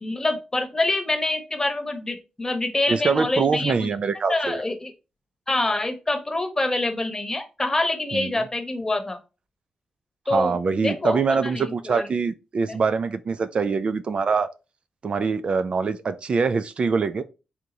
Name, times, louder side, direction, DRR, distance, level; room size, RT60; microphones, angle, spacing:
voice 1, 0.0-3.9 4.3-4.9 5.5-9.2 10.3-12.1 12.7-12.8, left 2 dB, 25° left, 1.0 m, -26 dB
voice 2, 2.9-4.6 8.1-8.4 10.3-14.5 15.0-17.2, right 5 dB, 55° right, 0.3 m, -24 dB
3.5 x 2.9 x 3.9 m
cardioid pair, 70°, 2 cm